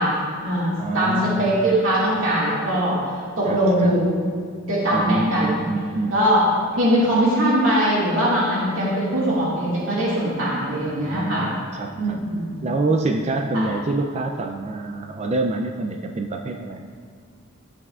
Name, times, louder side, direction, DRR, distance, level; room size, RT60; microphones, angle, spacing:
voice 1, 0.0-3.0 3.4-4.1 4.6-5.7 6.1-6.4 6.7-11.5 12.0-12.7 13.5-13.7, right 1 dB, 70° right, -7 dB, 2.0 m, -21 dB
voice 2, 0.8-1.5 3.5-3.9 4.9-6.1 10.8-12.2 12.6-16.9, right 2 dB, 30° right, 4 dB, 0.4 m, -26 dB
12.0 x 8.0 x 2.4 m, 2.2 s
head